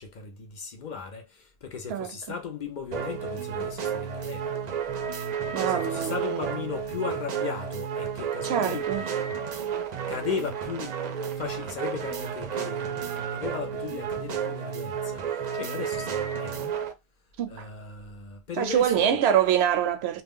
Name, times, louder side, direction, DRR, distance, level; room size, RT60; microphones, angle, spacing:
voice 1, 0.0-4.6 5.6-8.9 10.1-16.7 17.5-19.2, left 6 dB, 55° left, 0.6 m, -36 dB
sound 1, 2.9-16.9, right 7 dB, 55° right, 0.5 m, -32 dB
voice 2, 5.5-6.5 8.4-9.0 17.4-17.7 18.6-20.2, right 9 dB, 85° right, 0.8 m, -25 dB
2.3 x 2.1 x 3.5 m
omnidirectional pair, 1.1 m